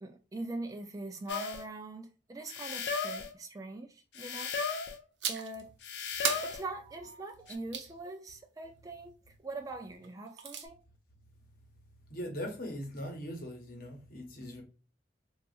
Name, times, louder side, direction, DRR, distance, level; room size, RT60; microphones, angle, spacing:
voice 1, 0.0-4.6 5.3-5.7 6.4-9.1 9.4-10.8, right 2 dB, 20° right, 0.3 m, -42 dB
sound 1, 1.3-1.7 2.5-3.3 4.2-5.0 5.8-6.7 7.5-7.6, left 5 dB, 70° left, 0.5 m, -35 dB
sound 2, 5.2-5.6 6.2-7.9 10.0-10.7, right 7 dB, 75° right, 0.6 m, -36 dB
voice 2, 12.1-14.6, equal, 50° left, 1.0 m, -40 dB
3.8 x 2.4 x 2.3 m
head